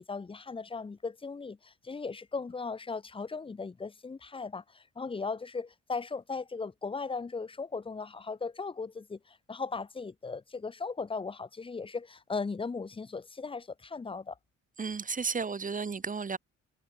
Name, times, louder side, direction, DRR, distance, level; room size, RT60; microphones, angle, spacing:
voice 1, 0.0-14.4, left 4 dB, 20° left, 0.7 m, -37 dB
voice 2, 14.8-16.4, right 5 dB, 25° right, 1.5 m, -33 dB
cardioid pair, 90°, 30 cm